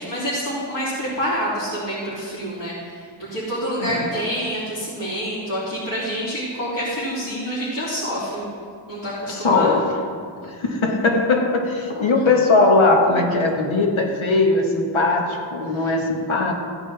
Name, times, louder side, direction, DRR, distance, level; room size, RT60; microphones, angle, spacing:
voice 1, 0.0-8.4 8.9-9.8 15.7-15.9, equal, 45° left, -11 dB, 3.2 m, -27 dB
voice 2, 9.3-9.9 10.4-16.5, left 3 dB, 80° left, 1 dB, 1.7 m, -19 dB
15.5 x 9.4 x 3.5 m, 2.2 s
wide cardioid pair, 85°, 47 cm